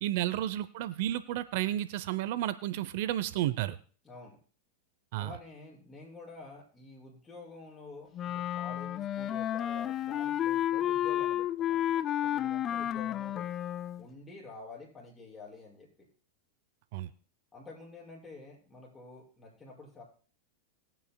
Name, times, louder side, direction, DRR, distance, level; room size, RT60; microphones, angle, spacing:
voice 1, 0.0-3.8 5.1-5.4 16.9-17.1, right 13 dB, 60° right, 15 dB, 0.6 m, -32 dB
voice 2, 4.0-4.4 5.2-13.5 14.0-16.1 17.5-20.0, left 3 dB, 15° left, -6 dB, 5.8 m, -49 dB
Wind instrument woodwind instrument, 8.1-14.0, left 11 dB, 35° left, 0.4 m, -31 dB
20.5 x 9.0 x 2.2 m, 0.41 s
hypercardioid pair, 110°, 0 cm